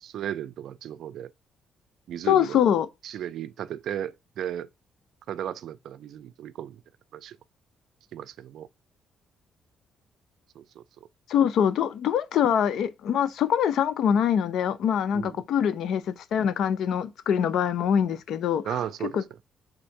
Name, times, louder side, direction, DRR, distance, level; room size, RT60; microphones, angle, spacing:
voice 1, 0.0-1.3 2.1-2.6 3.0-4.7 5.3-6.8 7.1-7.4 8.1-8.7 10.6-10.8 15.1-15.4 18.6-19.2, right 10 dB, 75° right, 0.4 m, -35 dB
voice 2, 2.3-2.9 11.3-18.8 19.1-19.2, left 8 dB, 75° left, 0.5 m, -24 dB
3.7 x 2.6 x 4.5 m
cardioid pair, 90°, 0 cm